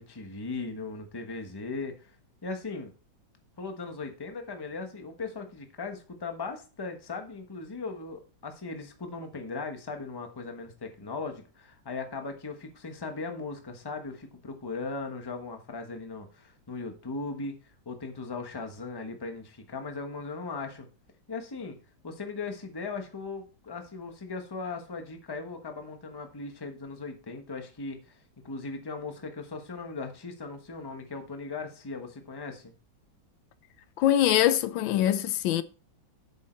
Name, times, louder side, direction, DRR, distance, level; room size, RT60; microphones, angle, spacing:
voice 1, 0.0-2.1 2.4-2.9 3.6-17.6 17.8-20.9 21.3-21.8 22.0-28.2 28.4-32.7, left 3 dB, 15° left, 1.0 m, -38 dB
voice 2, 34.0-35.6, left 12 dB, 85° left, 1.4 m, -23 dB
8.6 x 6.6 x 4.4 m
omnidirectional pair, 2.1 m